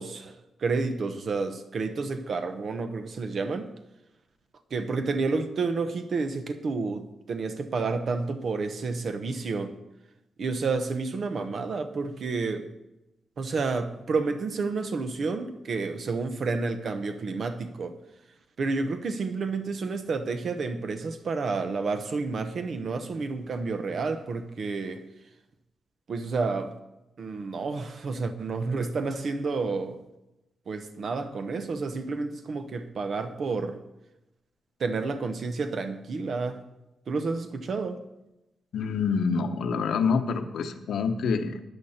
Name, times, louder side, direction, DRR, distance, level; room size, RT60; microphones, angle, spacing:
voice 1, 0.0-3.7 4.7-9.8 10.4-12.7 13.4-18.0 18.6-25.0 26.1-26.7 27.2-30.0 30.7-33.8 34.8-36.6 37.1-38.0, right 4 dB, 50° right, 0.9 m, -30 dB
voice 2, 38.7-41.6, left 5 dB, 75° left, 1.1 m, -26 dB
13.0 x 10.0 x 4.4 m
wide cardioid pair, 155°, 0 cm